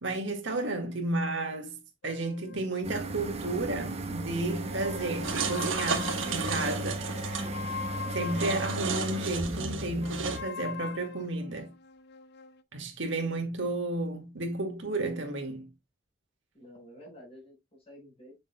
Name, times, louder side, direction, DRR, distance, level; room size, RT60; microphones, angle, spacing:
voice 1, 0.0-1.8 2.0-7.4 8.1-11.7 12.7-15.7, right 2 dB, 70° right, 1.9 m, -32 dB
sound 1, 2.0-4.1 4.5-9.3 10.0-12.6, left 6 dB, 55° left, 0.5 m, -42 dB
sound 2, 2.8-10.4, right 2 dB, 35° right, 1.0 m, -36 dB
sound 3, 5.2-7.4 8.3-10.4, right 5 dB, 90° right, 1.4 m, -34 dB
voice 2, 7.4-7.8 16.5-18.4, equal, 30° left, 5.5 m, -51 dB
7.9 x 6.3 x 2.2 m
head